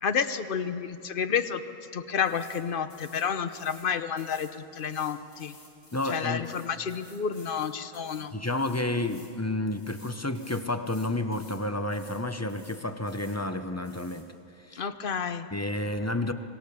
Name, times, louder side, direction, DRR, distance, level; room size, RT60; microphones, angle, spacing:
voice 1, 0.0-1.6 1.9-5.6 6.0-8.4 14.7-15.5, left 7 dB, 45° left, 11 dB, 0.8 m, -30 dB
sound 1, 2.2-2.6 2.9-3.9 4.2-9.3 9.7-11.6 11.9-12.2 12.5-13.4 13.8-14.2, left 1 dB, 70° left, 4.3 m, -54 dB
voice 2, 5.9-6.4 8.3-14.3 14.6-14.8 15.5-16.3, left 2 dB, 20° left, 8 dB, 0.4 m, -30 dB
25.5 x 19.5 x 6.8 m, 2.6 s
omnidirectional pair, 1.6 m